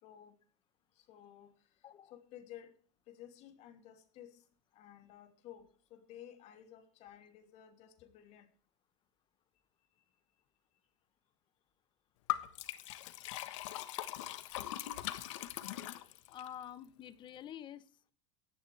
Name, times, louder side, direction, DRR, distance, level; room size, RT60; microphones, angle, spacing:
voice 1, 0.0-0.4 0.9-2.8 3.1-4.4 4.7-8.5 9.8-10.4 10.7-10.8, left 11 dB, 45° left, 6 dB, 2.8 m, -55 dB
Liquid, 12.3-16.5, left 15 dB, 80° left, 1.4 m, -40 dB
voice 2, 16.3-18.1, left 10 dB, 30° left, 15 dB, 1.0 m, -48 dB
17.5 x 12.5 x 3.4 m, 0.42 s
supercardioid pair, 140°, 16 cm